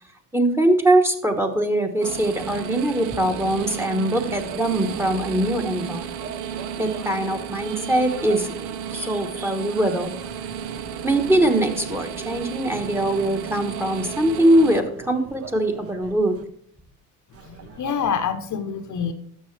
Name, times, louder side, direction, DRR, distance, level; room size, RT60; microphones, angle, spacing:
voice 1, 0.3-6.0 6.8-8.5 8.9-10.1 11.0-16.4, right 1 dB, 5° right, 7 dB, 1.2 m, -22 dB
sound 1, 2.0-14.8, right 8 dB, 80° right, 0.8 m, -33 dB
sound 2, 3.4-5.2 6.0-12.5 12.7-16.5 17.3-18.2, right 6 dB, 35° right, 1.0 m, -42 dB
voice 2, 17.4-19.1, left 7 dB, 50° left, 8 dB, 1.0 m, -26 dB
12.0 x 6.9 x 3.3 m, 0.66 s
supercardioid pair, 85°, 40 cm